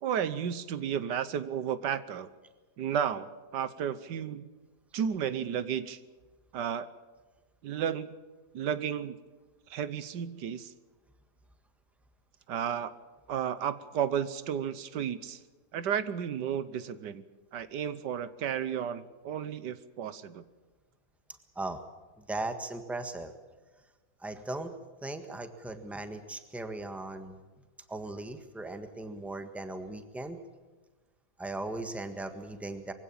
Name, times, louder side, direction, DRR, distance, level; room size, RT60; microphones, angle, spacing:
voice 1, 0.0-2.3 2.8-4.5 4.9-6.0 6.5-6.9 7.6-8.2 8.5-9.2 9.7-10.7 12.5-12.9 13.3-15.4 15.7-17.2 17.5-20.4, right 8 dB, 85° right, 14 dB, 1.6 m, -33 dB
voice 2, 22.3-23.3 24.2-24.7 25.0-27.4 27.9-30.4 31.4-32.9, right 2 dB, ahead, 8 dB, 1.4 m, -38 dB
23.0 x 16.5 x 8.7 m, 1.3 s
omnidirectional pair, 1.8 m